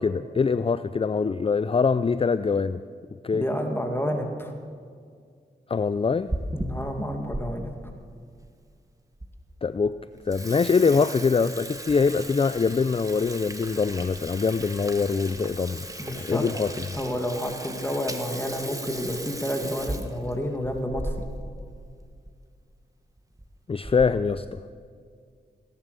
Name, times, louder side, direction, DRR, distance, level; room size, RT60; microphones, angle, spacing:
voice 1, 0.0-2.8 3.2-3.5 5.7-6.3 9.6-10.0 10.3-15.9 16.1-16.8 23.7-24.6, left 5 dB, 30° left, 14 dB, 0.4 m, -24 dB
voice 2, 3.3-4.5 6.5-7.7 16.0-16.5 16.9-21.1, equal, 10° left, 3 dB, 2.3 m, -30 dB
Water tap faucet / Sink (filling or washing), 6.0-7.4 7.9-8.0 8.7-8.8 9.2-9.3 9.7-9.9 10.2-21.6 21.9-22.0 22.2-22.4 23.2-23.4 23.8-24.3, right 1 dB, 20° right, 1.5 m, -36 dB
17.5 x 11.0 x 6.9 m, 2.2 s
cardioid pair, 45°, 19 cm